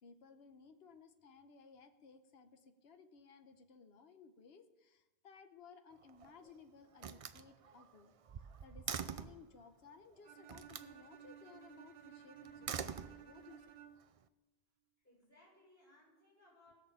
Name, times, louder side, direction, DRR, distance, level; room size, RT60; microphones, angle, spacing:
voice 1, 0.0-13.7, left 5 dB, 75° left, 8 dB, 1.2 m, -60 dB
Slam, 5.9-6.5 7.0-9.5 10.5-10.9 12.4-13.6, right 7 dB, 45° right, 0.5 m, -44 dB
Bowed string instrument, 10.2-14.2, right 9 dB, 85° right, 1.0 m, -56 dB
voice 2, 15.0-16.8, left 1 dB, 10° left, -4 dB, 6.1 m, -66 dB
17.5 x 6.5 x 7.3 m, 1.1 s
omnidirectional pair, 1.0 m